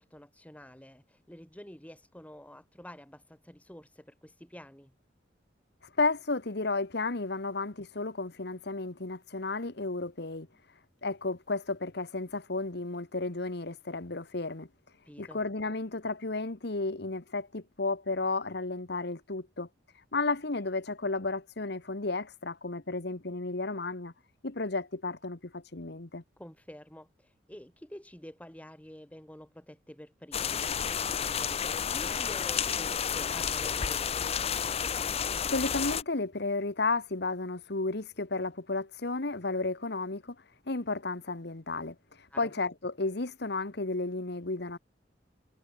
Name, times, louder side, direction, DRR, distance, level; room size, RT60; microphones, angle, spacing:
voice 1, 0.0-4.9 15.1-15.4 26.4-34.6 42.3-42.5, equal, 10° left, 1.7 m, -49 dB
voice 2, 6.0-10.5 11.0-14.7 15.2-19.7 20.1-24.1 24.4-26.2 35.5-40.3 40.7-44.8, left 3 dB, 60° left, 1.5 m, -33 dB
sound 1, 30.3-36.0, left 7 dB, 35° left, 0.6 m, -31 dB
head